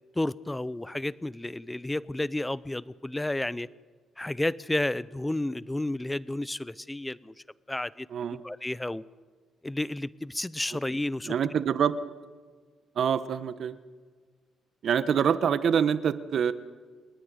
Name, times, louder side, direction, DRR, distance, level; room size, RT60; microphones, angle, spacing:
voice 1, 0.2-3.7 4.2-7.3 7.7-8.1 8.4-9.0 9.6-11.3, left 1 dB, 10° left, 19 dB, 0.6 m, -31 dB
voice 2, 8.1-8.4 11.3-11.9 13.0-13.8 14.8-16.5, right 8 dB, 60° right, 14 dB, 1.1 m, -25 dB
29.0 x 10.0 x 9.5 m, 1.5 s
cardioid pair, 90°, 0 cm